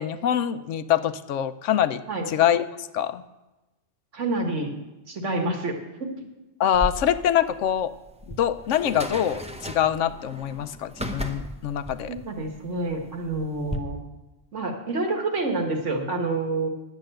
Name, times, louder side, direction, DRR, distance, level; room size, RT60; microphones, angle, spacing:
voice 1, 0.0-2.0 2.3-3.2 6.6-7.9 8.3-12.1, left 10 dB, 75° left, 12 dB, 1.0 m, -24 dB
voice 2, 4.1-4.8 5.1-6.3 12.1-14.0 14.5-16.7, right 2 dB, 70° right, 3 dB, 2.0 m, -28 dB
sound 1, 6.7-13.8, equal, 5° right, 0.7 m, -36 dB
10.5 x 7.4 x 7.7 m, 1.0 s
omnidirectional pair, 1.3 m